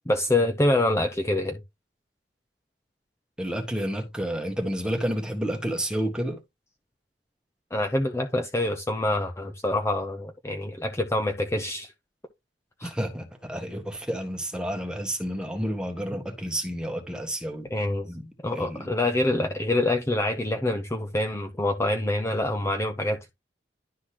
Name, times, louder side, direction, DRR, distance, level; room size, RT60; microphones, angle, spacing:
voice 1, 0.1-1.6 7.7-11.9 12.8-12.9 17.7-18.1 18.4-23.3, left 1 dB, 15° left, 0.7 m, -26 dB
voice 2, 3.4-6.4 12.8-17.7 18.1-18.9, equal, 5° right, 1.6 m, -30 dB
11.5 x 4.0 x 2.9 m
head